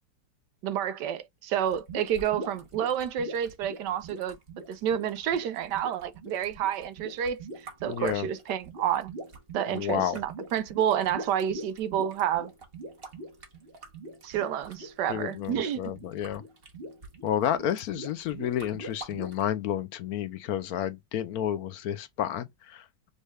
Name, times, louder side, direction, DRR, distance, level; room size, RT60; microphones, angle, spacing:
voice 1, 0.6-4.4 4.7-7.4 7.8-9.1 9.5-12.5 14.2-15.8, right 9 dB, 75° right, 1.2 m, -29 dB
sound 1, 1.7-19.4, right 2 dB, 40° right, 1.1 m, -43 dB
voice 2, 7.9-8.3 9.7-10.2 15.1-16.4 17.2-23.1, left 10 dB, 70° left, 0.9 m, -31 dB
5.4 x 3.2 x 2.3 m
omnidirectional pair, 2.0 m